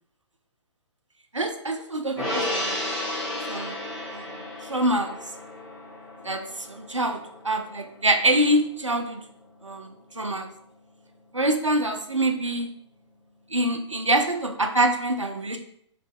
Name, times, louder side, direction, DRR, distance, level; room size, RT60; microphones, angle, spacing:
voice 1, 1.3-2.8 3.5-3.8 4.1-5.2 6.2-9.2 9.6-10.5 11.3-12.7 13.5-15.6, right 1 dB, 90° right, 5 dB, 0.7 m, -25 dB
Gong, 2.2-8.8 9.1-9.3, left 1 dB, ahead, 1.4 m, -33 dB
3.4 x 3.1 x 4.4 m, 0.69 s
figure-of-eight pair, 125°, 15 cm